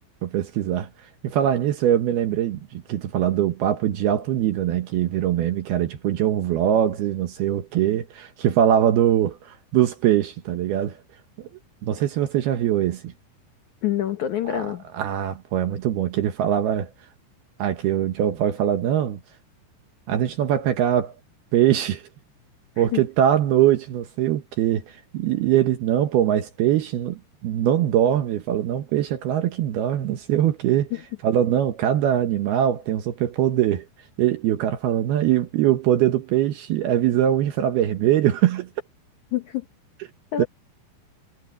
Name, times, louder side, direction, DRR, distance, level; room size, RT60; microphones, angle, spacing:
voice 1, 0.2-0.9 1.2-11.0 11.4-11.5 11.8-13.1 14.5-14.7 14.9-16.9 17.6-19.2 20.1-21.2 21.5-22.0 22.8-30.9 31.2-33.9 34.2-38.7 40.4-40.5, right 11 dB, 70° right, 2.8 m, -22 dB
voice 2, 13.8-14.8 22.8-23.0 30.9-31.0 39.3-39.7 40.3-40.4, left 12 dB, 70° left, 1.8 m, -26 dB
omnidirectional pair, 5.2 m